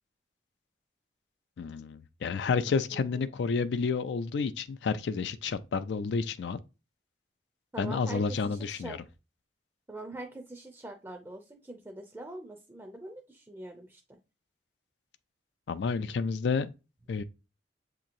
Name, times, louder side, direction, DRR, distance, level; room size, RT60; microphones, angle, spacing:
voice 1, 1.6-6.6 7.8-9.0 15.7-16.7 17.1-17.2, left 5 dB, 75° left, 0.4 m, -30 dB
voice 2, 2.9-3.2 7.7-9.0 9.9-14.0, right 1 dB, 10° right, 0.4 m, -43 dB
7.2 x 2.9 x 2.5 m
head